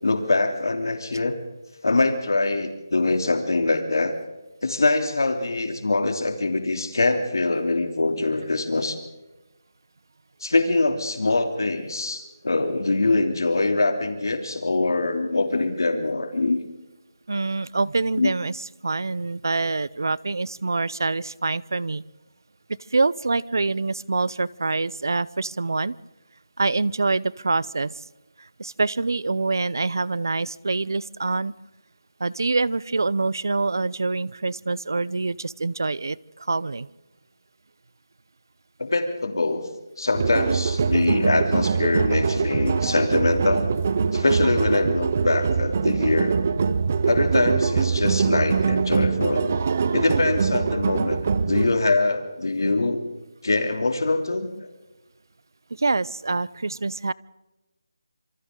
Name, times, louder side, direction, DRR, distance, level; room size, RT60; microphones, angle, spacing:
voice 1, 0.0-1.4 1.8-4.1 4.6-9.0 10.4-16.6 18.2-18.3 38.8-39.6 40.0-43.7 44.1-46.4 47.1-49.6 49.9-51.2 51.5-53.0 53.4-54.5, left 2 dB, 75° left, 6 dB, 3.0 m, -23 dB
voice 2, 17.3-22.0 22.9-26.0 26.6-28.0 28.6-31.5 32.2-36.9 55.7-57.1, right 3 dB, 65° right, 22 dB, 0.7 m, -25 dB
sound 1, 40.1-51.7, right 5 dB, 30° right, 0.7 m, -23 dB
27.0 x 25.5 x 3.9 m, 1.1 s
figure-of-eight pair, 180°, 2 cm